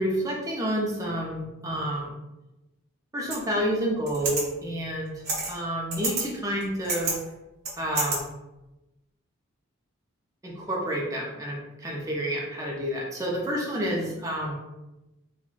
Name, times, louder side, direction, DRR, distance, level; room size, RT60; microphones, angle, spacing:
voice 1, 0.0-2.2 3.1-5.1 5.5-7.2 7.8-8.3 10.4-14.5, equal, 15° right, -3 dB, 0.5 m, -29 dB
sound 1, 3.3-3.4 4.1-4.4 5.2-5.6 5.9-6.2 6.6-7.2 7.6-8.2, right 3 dB, 50° right, 0.8 m, -28 dB
3.6 x 2.1 x 2.4 m, 0.99 s
head